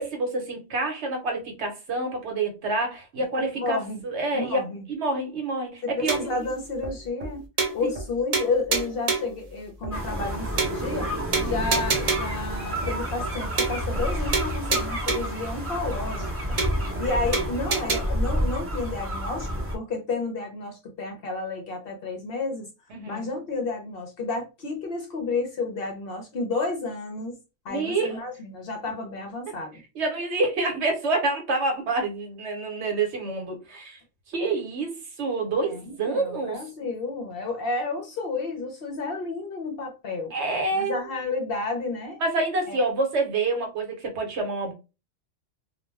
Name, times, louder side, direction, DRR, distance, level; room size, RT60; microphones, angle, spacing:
voice 1, 0.0-4.6 4.9-6.2 7.8-7.9 11.3-11.6 22.9-23.2 27.7-28.2 29.9-34.0 34.3-36.6 40.3-41.0 42.2-44.7, right 3 dB, 65° right, 1.0 m, -27 dB
voice 2, 3.3-4.0 4.3-4.8 5.8-7.5 7.7-11.1 11.4-16.6 17.0-22.7 23.1-27.4 27.6-29.8 35.6-40.3 40.7-42.2 42.7-42.8, left 3 dB, 60° left, 0.7 m, -31 dB
sound 1, 6.1-6.4 6.8-6.9 7.2-7.3 7.6-8.1 8.3-9.4 9.8-9.9 10.2-10.3 10.6-11.0 11.3-12.4 12.8-12.9 13.2-13.3 13.6-14.1 14.3-15.4 15.8-15.9 16.2-16.3 16.6-17.0 17.3-18.0, right 4 dB, 50° right, 0.5 m, -27 dB
sound 2, 9.9-19.7, equal, 15° right, 0.7 m, -29 dB
2.3 x 2.2 x 3.2 m
omnidirectional pair, 1.3 m